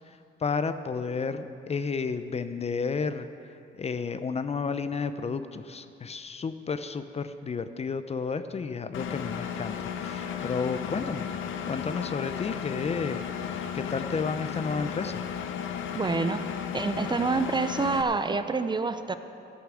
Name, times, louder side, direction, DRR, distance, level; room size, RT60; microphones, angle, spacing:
voice 1, 0.1-3.3 3.8-11.3 11.7-15.2, left 5 dB, 30° left, 11 dB, 0.6 m, -32 dB
Engine, 8.9-18.0, left 8 dB, 75° left, 0.8 m, -34 dB
voice 2, 15.9-16.4 16.7-19.1, right 4 dB, 20° right, 10 dB, 0.6 m, -27 dB
12.5 x 9.2 x 6.2 m, 2.6 s
cardioid pair, 90°, 20 cm